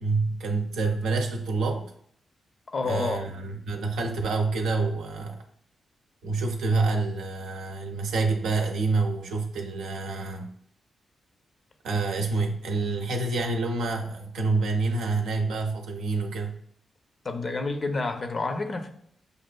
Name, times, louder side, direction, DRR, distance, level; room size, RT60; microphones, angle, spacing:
voice 1, 0.0-1.9 2.8-5.4 6.2-10.5 11.8-16.6, right 3 dB, 85° right, 2 dB, 0.5 m, -27 dB
voice 2, 2.7-3.3 17.2-18.9, left 3 dB, 50° left, 6 dB, 0.6 m, -29 dB
6.5 x 2.4 x 2.2 m, 0.66 s
supercardioid pair, 45°, 0 cm